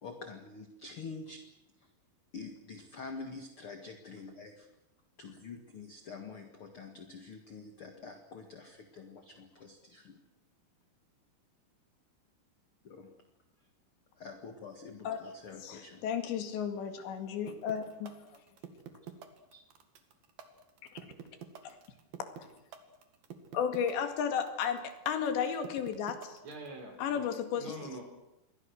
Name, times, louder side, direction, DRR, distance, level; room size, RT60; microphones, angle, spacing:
voice 1, 0.0-1.4 2.3-4.7 5.2-10.2 12.8-13.1 14.2-16.0 19.5-19.6, left 4 dB, 50° left, 5 dB, 1.7 m, -46 dB
voice 2, 15.6-18.3 21.6-21.8 23.5-26.4 27.0-27.8, left 7 dB, 80° left, 7 dB, 4.4 m, -33 dB
sound 1, 17.5-26.7, right 9 dB, 60° right, 3.6 m, -47 dB
voice 3, 26.4-27.3 27.6-28.0, right 2 dB, 40° right, 3 dB, 5.8 m, -44 dB
28.5 x 23.0 x 6.5 m, 0.92 s
omnidirectional pair, 5.1 m